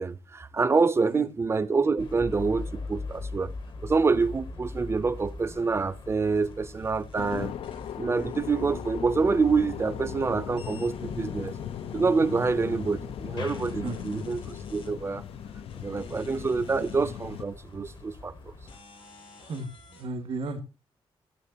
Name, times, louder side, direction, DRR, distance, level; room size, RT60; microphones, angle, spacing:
voice 1, 0.0-3.5 3.8-7.5 8.0-11.5 11.9-15.2 15.8-18.5, right 4 dB, 25° right, 0.5 m, -26 dB
sound 1, 2.0-18.8, left 3 dB, 55° left, 1.1 m, -42 dB
sound 2, 6.2-9.3 9.6-13.0 13.4-14.9 15.7-17.2 17.7-17.8 18.7-20.0, left 3 dB, 75° left, 5.2 m, -49 dB
sound 3, 7.2-17.5, left 10 dB, 90° left, 0.5 m, -38 dB
voice 2, 13.8-14.2 19.5-19.7 20.0-20.6, right 3 dB, 80° right, 1.8 m, -34 dB
14.5 x 8.7 x 2.8 m
wide cardioid pair, 135°, 10 cm